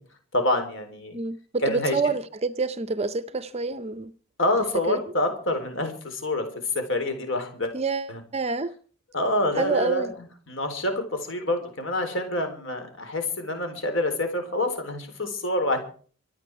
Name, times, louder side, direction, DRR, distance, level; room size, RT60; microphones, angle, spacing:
voice 1, 0.3-1.2 1.6-2.0 4.4-6.4 6.7-7.7 8.1-8.2 9.1-10.0 10.5-15.8, left 1 dB, 55° left, 4.0 m, -27 dB
voice 2, 1.1-4.1 4.9-5.0 7.7-8.7 9.6-10.1, right 4 dB, 30° right, 0.6 m, -27 dB
24.5 x 9.3 x 4.8 m
head